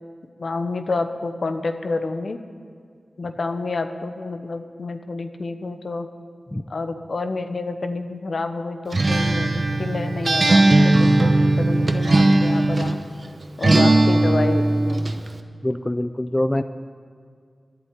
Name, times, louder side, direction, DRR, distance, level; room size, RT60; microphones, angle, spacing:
voice 1, 0.4-2.4 3.2-6.1 6.7-11.3 11.6-13.0 13.6-15.1, left 3 dB, 65° left, 8 dB, 0.9 m, -28 dB
Acoustic guitar, 8.9-13.0 13.6-15.2, right 2 dB, 50° right, 0.9 m, -18 dB
voice 2, 15.6-16.6, left 1 dB, 20° left, 10 dB, 0.5 m, -24 dB
10.5 x 8.1 x 9.6 m, 2.1 s
cardioid pair, 45°, 0 cm